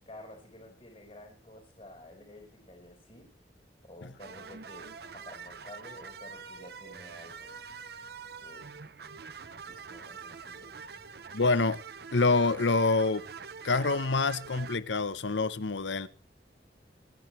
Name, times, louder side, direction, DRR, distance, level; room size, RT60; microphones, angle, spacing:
voice 1, 0.1-3.3 3.8-7.6 8.4-8.7 9.6-11.3, left 1 dB, 35° left, 4.6 m, -51 dB
sound 1, 4.2-14.8, right 5 dB, 60° right, 0.8 m, -45 dB
voice 2, 11.3-11.8 12.1-13.3 13.6-16.1, left 3 dB, 85° left, 0.9 m, -26 dB
27.0 x 10.5 x 3.2 m
head